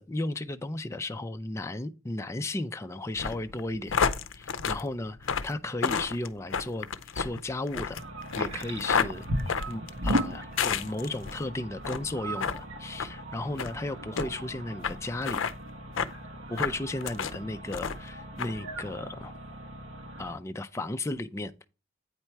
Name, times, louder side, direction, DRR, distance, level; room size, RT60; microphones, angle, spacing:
voice 1, 0.0-4.0 4.3-8.0 8.3-9.3 9.7-15.4 16.5-19.3 20.2-21.7, left 2 dB, 15° left, 0.4 m, -35 dB
sound 1, 3.2-11.4 11.8-12.1 12.4-12.6 13.0-13.1 13.6-13.7 14.2-14.3 14.8-14.9 15.2-15.5 16.0-16.1 16.6-17.4 17.7-18.1 18.4-18.5, left 6 dB, 70° left, 0.6 m, -30 dB
sound 2, 7.9-20.3, right 1 dB, 85° right, 1.2 m, -37 dB
8.9 x 4.3 x 4.6 m
head